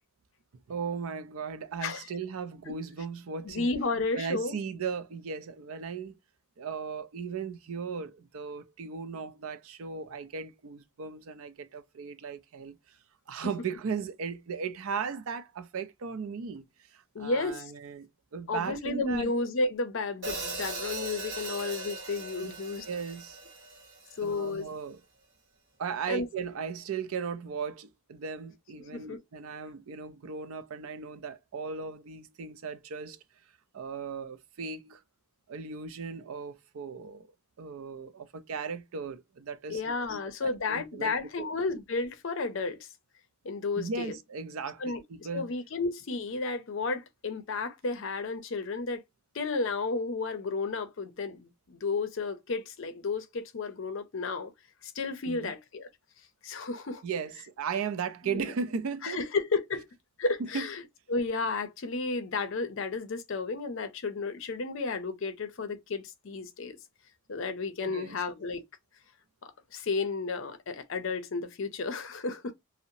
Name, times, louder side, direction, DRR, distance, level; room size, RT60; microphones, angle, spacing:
voice 1, 0.7-3.7 4.1-6.2 6.6-12.8 13.3-16.6 16.9-19.3 22.4-22.5 22.9-23.4 24.2-25.0 25.8-33.2 33.7-35.0 35.5-37.3 37.6-41.5 43.8-45.5 55.2-55.5 57.0-59.2 60.4-60.7 67.8-68.2, right 5 dB, 70° right, 0.4 m, -37 dB
voice 2, 3.4-4.6 17.1-17.7 18.5-22.9 24.2-24.7 26.1-26.3 28.8-29.2 39.7-42.9 43.4-44.1 44.8-45.0 45.3-49.0 49.3-54.5 54.8-55.9 56.4-57.0 58.3-58.5 59.0-59.9 60.2-60.8 61.1-66.8 67.3-68.6 69.4-72.5, left 3 dB, 60° left, 0.5 m, -32 dB
Hi-hat, 20.2-24.4, right 3 dB, 55° right, 1.2 m, -39 dB
2.7 x 2.0 x 2.5 m
head